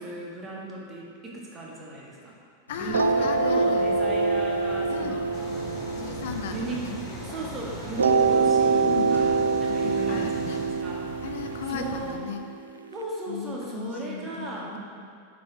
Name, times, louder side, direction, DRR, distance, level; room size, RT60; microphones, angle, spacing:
voice 1, 0.0-2.4 2.8-5.2 6.5-7.0 7.2-11.0 11.7-12.2 12.9-14.8, right 2 dB, 20° right, -3 dB, 1.6 m, -36 dB
sound 1, 2.7-12.1, equal, 85° left, 1.2 m, -42 dB
voice 2, 2.7-3.9 4.9-5.3 6.0-7.0 8.9-9.1 9.7-10.6 11.2-12.4 13.3-14.8, left 7 dB, 55° left, 6 dB, 0.6 m, -36 dB
sound 2, 2.9-7.3 8.0-12.9, right 4 dB, 75° right, 0.4 m, -25 dB
sound 3, 5.3-10.7, equal, 20° left, 1.5 m, -41 dB
7.1 x 4.9 x 4.8 m, 2.3 s
figure-of-eight pair, 90°, 0 cm